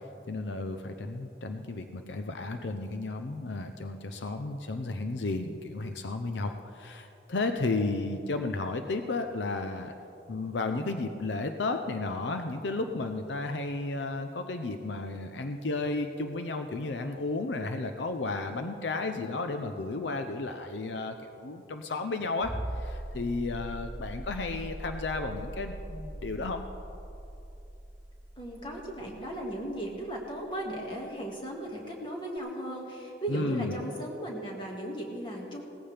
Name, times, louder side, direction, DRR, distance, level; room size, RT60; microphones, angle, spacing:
voice 1, 0.3-9.9 10.3-26.6 33.3-33.8, left 3 dB, 80° left, 6 dB, 0.6 m, -33 dB
sound 1, 22.4-30.9 32.4-32.5, right 1 dB, 15° right, 0.4 m, -41 dB
voice 2, 28.4-35.6, right 1 dB, 25° left, -1 dB, 2.0 m, -36 dB
17.5 x 14.5 x 3.4 m, 2.8 s
head